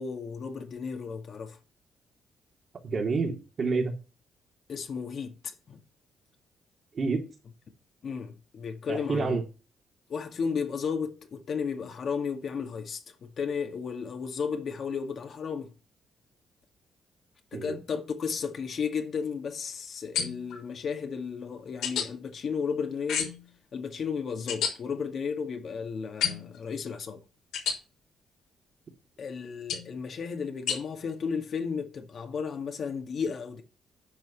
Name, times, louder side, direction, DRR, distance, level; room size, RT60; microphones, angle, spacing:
voice 1, 0.0-1.6 4.7-5.8 8.0-9.4 10.1-15.7 17.5-23.3 23.7-27.2 29.2-33.6, left 6 dB, 55° left, 2.1 m, -34 dB
voice 2, 2.8-3.9 6.9-7.2 8.9-9.4 17.5-17.8, right 4 dB, 45° right, 3.3 m, -28 dB
sound 1, 20.1-20.6 21.8-22.1 23.1-23.5 24.5-24.7 26.2-26.6 27.5-27.8 29.7-29.9 30.7-30.8, left 8 dB, 85° left, 4.4 m, -30 dB
10.5 x 5.6 x 7.0 m
cardioid pair, 90°, 0 cm